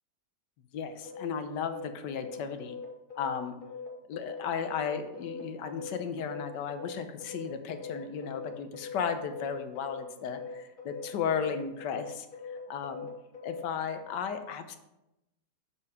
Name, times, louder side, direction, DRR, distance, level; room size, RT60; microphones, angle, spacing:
voice 1, 0.7-2.8 3.2-3.6 4.1-13.1 13.4-14.8, left 6 dB, 85° left, 8 dB, 1.3 m, -35 dB
sound 1, 1.0-13.6, left 5 dB, 35° left, 1.1 m, -42 dB
7.1 x 4.5 x 4.8 m, 0.91 s
omnidirectional pair, 1.9 m